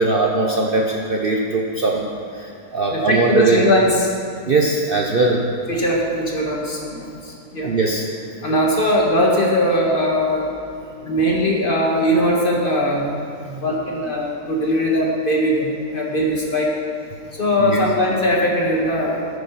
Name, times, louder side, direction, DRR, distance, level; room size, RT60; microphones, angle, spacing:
voice 1, 0.0-2.0 2.3-3.6 4.4-5.4 7.6-8.0 8.5-8.6 13.5-13.6 17.6-17.8, right 3 dB, 45° right, -1 dB, 0.8 m, -20 dB
voice 2, 2.9-4.1 5.7-7.7 8.4-10.5 11.0-13.2 13.6-16.7 17.3-19.3, equal, 35° left, -2 dB, 1.7 m, -20 dB
13.0 x 6.6 x 5.7 m, 2.4 s
omnidirectional pair, 1.6 m